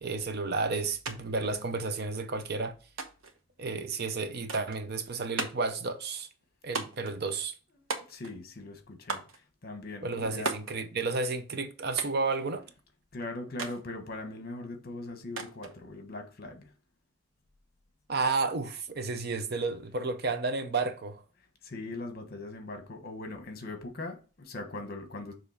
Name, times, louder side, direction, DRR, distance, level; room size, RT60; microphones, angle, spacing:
voice 1, 0.0-2.7 3.6-6.3 6.6-7.5 10.0-12.7 18.1-21.2, right 3 dB, 50° right, 0.6 m, -32 dB
sound 1, 1.1-1.2 1.4-2.2 3.0-3.4 4.5-4.8 5.4-5.8 6.8-7.2 7.9-8.4 9.1-9.4 10.5-10.8 12.0-12.3 13.6-13.8 15.4-15.8, right 4 dB, 70° right, 1.0 m, -36 dB
voice 2, 7.7-10.6 13.1-16.7 21.6-25.3, left 2 dB, 45° left, 1.3 m, -40 dB
6.9 x 3.1 x 5.0 m
head